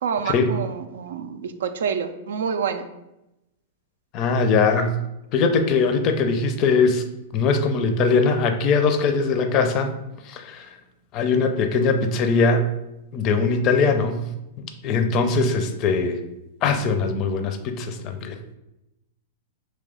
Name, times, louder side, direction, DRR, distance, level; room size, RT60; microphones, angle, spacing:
voice 1, 0.0-2.9, right 6 dB, 65° right, 9 dB, 0.4 m, -27 dB
voice 2, 4.1-5.0 5.3-7.0 7.3-9.9 10.2-10.7 11.1-12.7 13.1-14.3 14.6-16.2 16.6-18.4, left 4 dB, 35° left, 7 dB, 0.5 m, -21 dB
3.3 x 3.2 x 3.7 m, 0.91 s
figure-of-eight pair, 100°, 0 cm